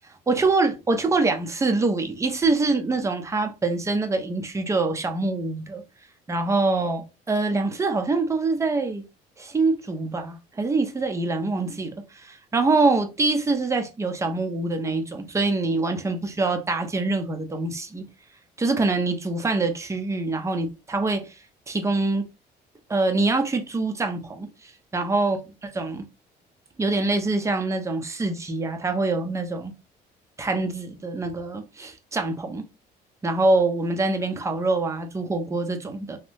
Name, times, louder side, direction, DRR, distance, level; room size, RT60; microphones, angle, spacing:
voice 1, 0.3-5.8 6.3-9.0 9.4-12.0 12.2-18.0 18.6-21.3 21.7-22.2 22.9-24.5 24.9-25.4 25.7-26.0 26.8-29.7 30.4-32.7 33.2-36.2, right 3 dB, 15° right, 0.5 m, -24 dB
2.8 x 2.0 x 3.3 m
cardioid pair, 110°, 17 cm